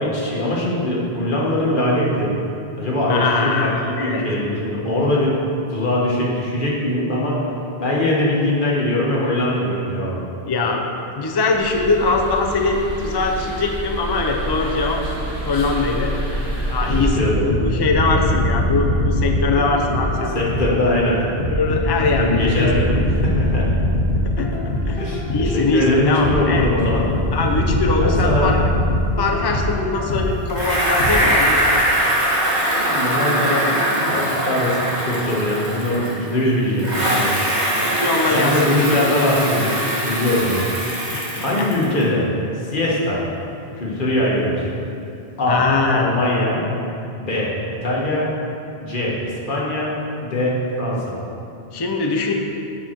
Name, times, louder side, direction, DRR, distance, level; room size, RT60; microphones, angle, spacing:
voice 1, 0.0-2.3 2.8-5.4 5.7-7.4 7.8-10.2 16.3-16.5 16.8-17.6 20.1-21.3 22.2-23.7 25.0-27.1 28.0-28.5 32.8-33.7 34.0-37.3 38.2-40.6 41.4-42.3 42.6-43.2 43.8-44.7 45.4-45.6 45.9-46.6 47.1-47.5 47.8-48.3 48.8-49.9 50.2-51.2, left 1 dB, 55° left, -4 dB, 1.4 m, -21 dB
voice 2, 3.1-4.2 10.5-10.8 11.2-15.0 15.4-16.1 16.7-20.3 21.5-22.7 24.2-24.6 24.9-26.7 27.3-28.6 29.2-31.8 32.7-32.8 38.0-38.5 41.1-41.7 45.5-46.1 51.7-52.3, left 3 dB, 35° left, 1 dB, 0.4 m, -22 dB
sound 1, 11.5-17.1, right 1 dB, 25° right, 1.6 m, -28 dB
sound 2, 16.9-20.9 21.4-25.6 26.2-30.4 31.0-31.1, left 1 dB, 85° left, 1.3 m, -21 dB
Bicycle, 30.5-36.4 36.8-42.0, equal, 45° right, 1.6 m, -21 dB
7.1 x 6.1 x 4.4 m, 2.7 s
omnidirectional pair, 1.1 m